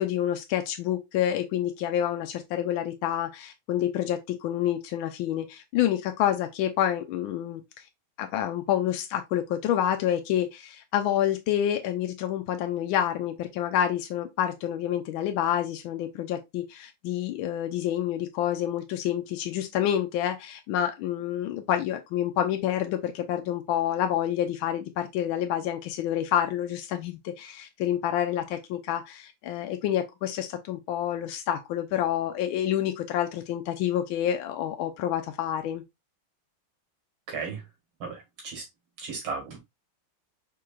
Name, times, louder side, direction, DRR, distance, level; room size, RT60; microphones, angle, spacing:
voice 1, 0.0-7.6 8.2-35.8, left 11 dB, 85° left, 1.4 m, -28 dB
voice 2, 37.3-37.6 38.0-38.6 39.0-39.6, right 5 dB, 80° right, 2.7 m, -35 dB
4.6 x 4.5 x 2.4 m
omnidirectional pair, 2.2 m